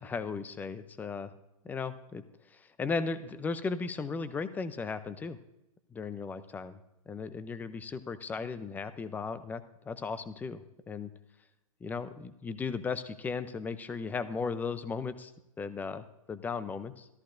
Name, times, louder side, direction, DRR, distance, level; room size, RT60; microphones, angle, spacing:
voice 1, 0.0-1.3 1.6-2.2 2.5-5.4 5.9-6.8 7.1-11.1 11.8-15.3 15.6-17.1, left 4 dB, 10° left, 13 dB, 0.5 m, -36 dB
14.0 x 13.5 x 2.6 m, 0.90 s
hypercardioid pair, 135°, 19 cm